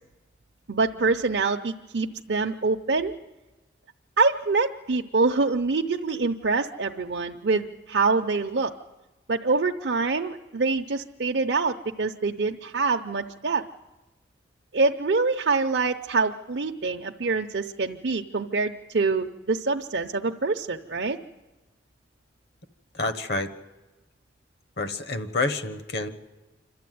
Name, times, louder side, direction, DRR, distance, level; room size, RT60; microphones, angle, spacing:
voice 1, 0.7-3.1 4.2-8.7 9.3-13.6 14.7-21.2, right 4 dB, 70° right, 2 dB, 0.7 m, -25 dB
voice 2, 22.9-23.5 24.8-26.1, left 3 dB, 60° left, 11 dB, 1.3 m, -28 dB
27.5 x 13.0 x 9.4 m, 1.1 s
head